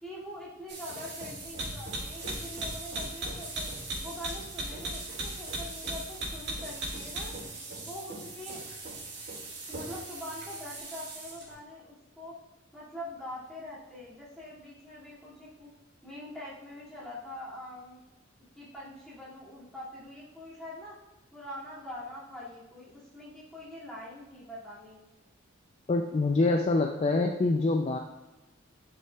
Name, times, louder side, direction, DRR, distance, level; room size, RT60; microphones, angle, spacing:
voice 1, 0.0-3.7 4.0-7.3 7.7-8.6 9.7-12.4 12.7-15.7 16.0-18.0 18.6-21.0 21.3-25.1, left 1 dB, 5° left, -9 dB, 2.2 m, -44 dB
sound 1, 0.7-11.5, right 2 dB, 60° right, 2.1 m, -38 dB
voice 2, 25.9-28.0, left 3 dB, 30° left, 3 dB, 0.4 m, -25 dB
10.5 x 5.5 x 2.3 m, 1.1 s
head